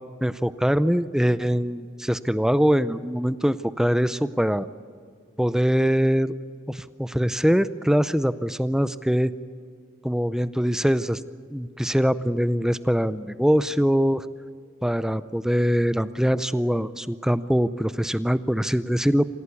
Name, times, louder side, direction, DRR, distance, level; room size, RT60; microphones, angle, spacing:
voice 1, 0.2-4.7 5.4-6.3 6.7-9.3 10.0-11.2 11.5-14.3 14.8-19.2, equal, 5° right, 14 dB, 0.5 m, -23 dB
27.0 x 16.0 x 8.4 m, 2.1 s
head